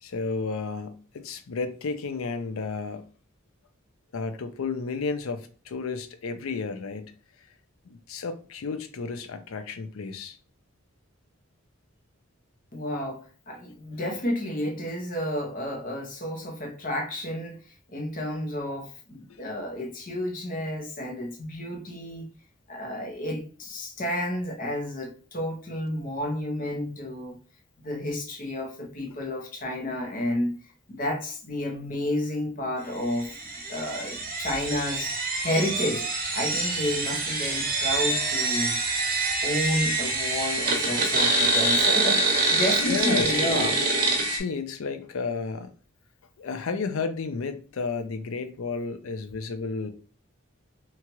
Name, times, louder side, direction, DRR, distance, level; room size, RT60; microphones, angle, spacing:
voice 1, 0.0-3.1 4.1-7.1 7.9-10.4 19.3-19.4 42.8-43.7 44.3-45.7 46.4-49.9, left 4 dB, 75° left, 0.5 m, -32 dB
voice 2, 12.7-22.3 22.7-27.4 27.8-30.5 30.9-33.4 33.7-36.1 36.3-38.8 39.4-43.8, left 1 dB, 40° left, 0.7 m, -31 dB
sound 1, 33.2-44.4, right 2 dB, 45° right, 0.7 m, -25 dB
2.9 x 2.4 x 2.9 m
head